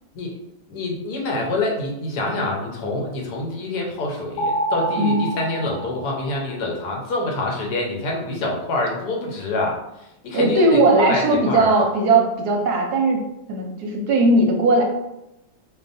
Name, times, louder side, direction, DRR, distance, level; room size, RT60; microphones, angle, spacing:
voice 1, 0.7-11.8, left 2 dB, 65° left, -1 dB, 1.3 m, -26 dB
sound 1, 4.4-6.8, right 1 dB, 80° left, 1.3 m, -27 dB
voice 2, 10.3-13.2 13.5-14.8, right 2 dB, 65° right, 1 dB, 1.0 m, -18 dB
4.3 x 3.1 x 2.6 m, 0.90 s
omnidirectional pair, 2.1 m